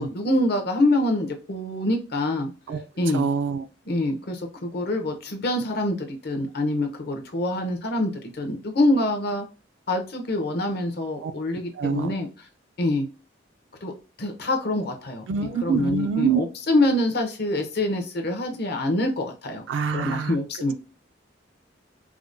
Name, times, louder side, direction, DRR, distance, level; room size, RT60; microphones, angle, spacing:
voice 1, 0.0-2.5 3.0-3.3 3.9-9.4 9.9-12.3 12.8-13.0 13.8-13.9 14.2-19.6 19.9-20.7, left 1 dB, 55° left, 0.7 m, -25 dB
voice 2, 3.1-3.6 11.2-11.3 11.7-12.2 15.3-16.4 19.7-20.4, right 6 dB, 75° right, 0.4 m, -25 dB
4.7 x 2.1 x 2.5 m
head